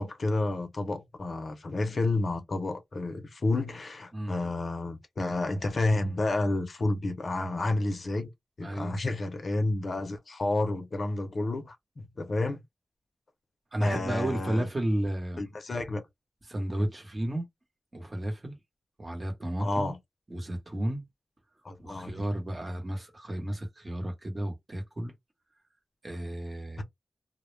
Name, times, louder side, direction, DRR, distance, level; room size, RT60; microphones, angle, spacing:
voice 1, 0.0-8.3 8.6-12.6 13.8-14.7 15.4-16.0 16.8-16.9 19.6-20.0 21.6-22.3 26.8-26.9, left 2 dB, 55° left, 0.5 m, -30 dB
voice 2, 4.1-4.5 8.6-9.0 13.7-15.4 16.5-17.5 17.9-18.6 19.0-19.9 20.3-21.0 21.8-25.1 26.0-26.8, right 1 dB, 30° right, 0.9 m, -33 dB
2.1 x 2.0 x 3.1 m
wide cardioid pair, 95°, 0 cm